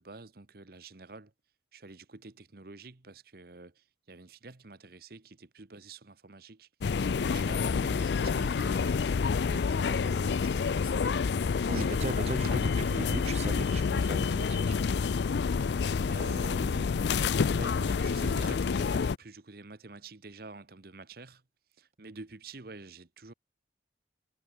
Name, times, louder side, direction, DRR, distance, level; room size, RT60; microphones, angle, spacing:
voice 1, 0.0-1.3 1.7-6.7 7.2-11.2 11.6-13.3 16.1-21.4 21.8-23.3, right 3 dB, 55° right, 1.1 m, -48 dB
sound 1, 6.8-19.2, left 5 dB, 70° left, 0.4 m, -28 dB
voice 2, 11.7-14.8, right 3 dB, 35° right, 0.4 m, -38 dB
head